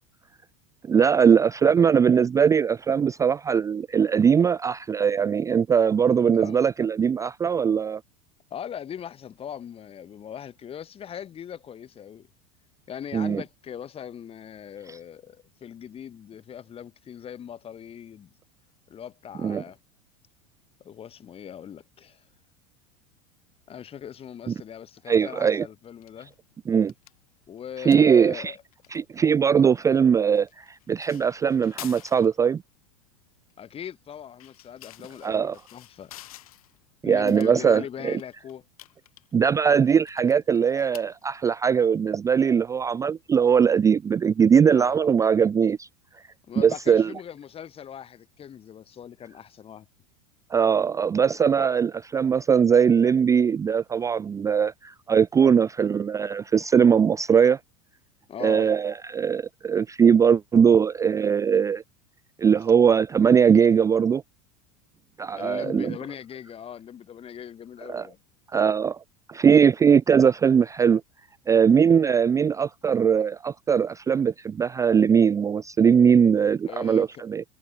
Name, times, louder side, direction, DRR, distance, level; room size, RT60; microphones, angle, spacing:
voice 1, 0.8-8.0 13.1-13.4 19.4-19.6 24.5-24.6 25.1-25.7 26.7-26.9 27.8-28.5 28.9-32.6 35.2-35.6 37.0-38.2 39.3-45.9 46.6-47.1 50.5-57.6 58.4-61.8 62.4-64.2 65.2-65.9 67.9-68.1 68.5-69.0 69.3-71.0 71.5-77.4, right 7 dB, 15° right, 0.4 m, -20 dB
voice 2, 8.5-12.3 12.9-18.3 18.9-19.8 20.8-22.2 23.7-26.3 27.5-28.6 33.6-36.2 37.0-38.6 44.7-45.1 46.5-49.9 58.3-58.7 65.4-68.2 76.6-77.2, left 9 dB, 30° left, 1.6 m, -40 dB
sound 1, 25.8-44.2, left 15 dB, 75° left, 5.0 m, -51 dB
hypercardioid pair, 90°, 19 cm